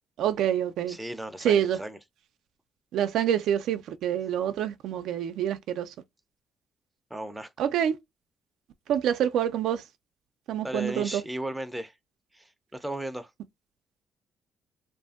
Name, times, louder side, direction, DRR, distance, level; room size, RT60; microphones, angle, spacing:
voice 1, 0.2-1.0 1.4-1.8 2.9-5.9 7.6-8.0 8.9-9.8 10.5-11.2, right 10 dB, 80° right, 0.3 m, -26 dB
voice 2, 0.9-2.0 7.1-7.5 10.6-11.9 12.3-13.3, right 1 dB, 5° right, 0.5 m, -35 dB
2.6 x 2.5 x 2.3 m
cardioid pair, 90°, 0 cm